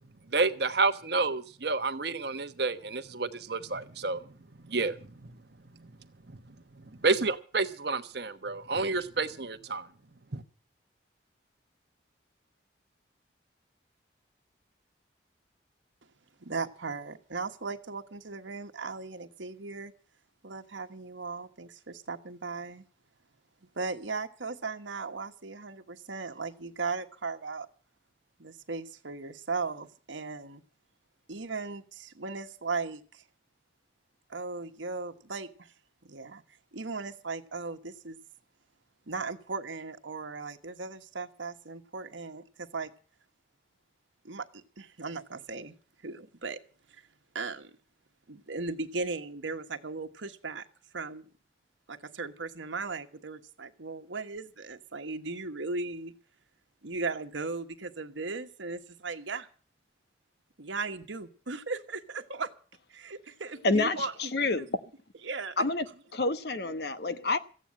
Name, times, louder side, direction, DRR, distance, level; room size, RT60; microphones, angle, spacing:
voice 1, 0.3-4.2 4.7-5.0 7.0-9.9 10.3-10.4, right 3 dB, 60° right, 1.2 m, -29 dB
voice 2, 16.4-19.9 20.4-22.8 23.7-27.7 28.4-30.6 31.3-33.2 34.3-35.7 36.1-36.4 36.7-38.2 39.1-42.9 44.2-45.7 46.0-46.6 47.3-47.7 48.3-50.7 50.9-51.3 51.9-56.1 56.8-59.5 60.6-62.5 62.9-64.1 65.2-65.5, right 4 dB, 85° right, 1.3 m, -37 dB
voice 3, 63.6-64.8 65.6-65.9 66.1-67.4, left 2 dB, 55° left, 1.0 m, -28 dB
15.0 x 9.1 x 8.9 m
head